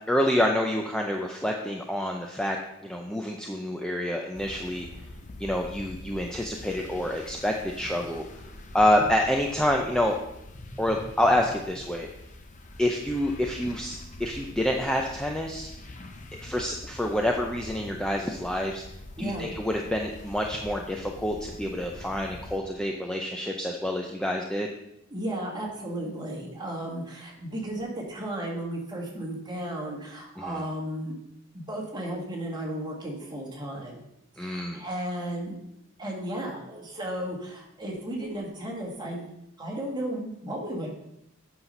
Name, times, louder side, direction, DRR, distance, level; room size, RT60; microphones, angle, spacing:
voice 1, 0.1-2.6 2.8-4.9 5.4-8.2 8.7-10.1 10.8-12.1 12.8-15.7 16.4-18.8 19.2-24.7 30.4-30.6 34.4-34.8, left 1 dB, 5° left, 1 dB, 0.5 m, -27 dB
sound 1, 4.3-22.6, left 1 dB, 35° left, 0.8 m, -44 dB
voice 2, 25.1-31.2 31.5-34.0 34.3-35.5 36.0-39.3 39.6-40.9, right 1 dB, 20° right, -1 dB, 1.7 m, -34 dB
8.4 x 5.8 x 5.4 m, 0.82 s
head